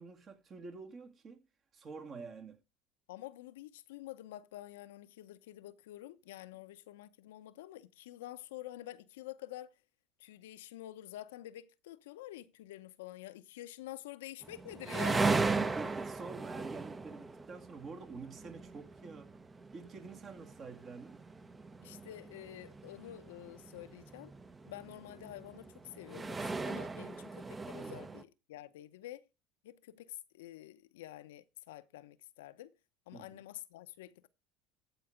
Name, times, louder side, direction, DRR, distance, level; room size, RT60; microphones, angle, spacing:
voice 1, 0.0-1.4 1.7-2.6 15.4-19.3 19.7-21.2 27.8-28.0 33.1-33.4, right 4 dB, 40° right, 2.3 m, -47 dB
voice 2, 3.1-9.7 10.2-15.3 21.8-24.3 24.6-29.3 29.6-32.7 33.1-34.3, left 14 dB, 85° left, 0.7 m, -48 dB
sound 1, 14.4-28.2, right 3 dB, 20° right, 0.9 m, -38 dB
14.0 x 4.7 x 5.1 m
supercardioid pair, 95°, 0 cm